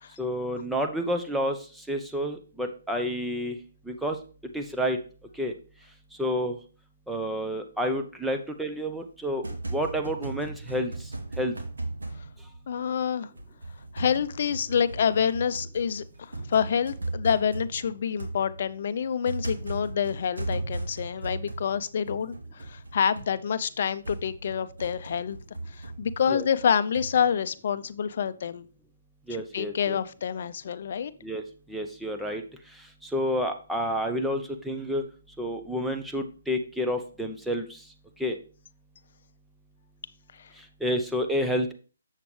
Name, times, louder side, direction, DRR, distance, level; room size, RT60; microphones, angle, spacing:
voice 1, 0.2-3.6 3.9-4.2 4.5-5.0 5.3-5.5 6.2-6.6 7.1-9.4 9.7-11.1 11.4-11.5 26.3-26.4 29.3-30.0 31.2-31.4 31.7-32.4 32.8-35.0 35.4-37.8 38.2-38.4 40.6-41.7, equal, 5° right, 4 dB, 0.7 m, -29 dB
sound 1, 9.2-13.0 13.4-27.3, right 2 dB, 85° right, 1.9 m, -37 dB
voice 2, 12.7-13.3 13.9-25.4 25.7-28.7 29.5-31.1 40.4-40.5, left 7 dB, 55° left, 13 dB, 0.5 m, -27 dB
7.3 x 6.8 x 3.2 m, 0.38 s
hypercardioid pair, 145°, 0 cm